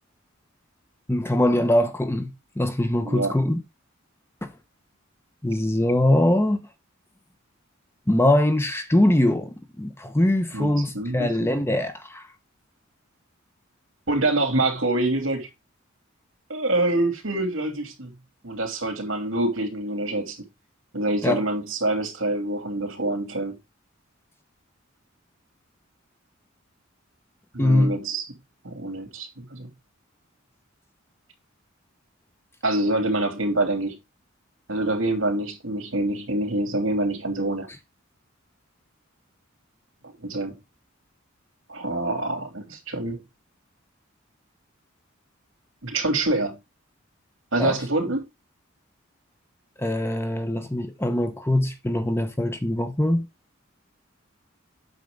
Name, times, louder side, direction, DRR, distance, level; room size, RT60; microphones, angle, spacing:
voice 1, 1.1-3.6 4.4-4.5 5.4-6.7 8.1-12.2 21.2-21.4 27.6-27.9 47.6-47.8 49.8-53.3, left 1 dB, 10° left, 0.9 m, -22 dB
voice 2, 3.0-3.3 10.5-11.5 14.1-15.5 16.5-18.1 18.4-20.4 20.9-23.6 27.5-28.3 28.6-29.7 32.6-34.0 34.7-37.7 40.2-40.5 41.7-43.2 45.8-46.6 47.5-48.2, right 2 dB, 70° right, 2.9 m, -26 dB
8.7 x 6.7 x 3.8 m
head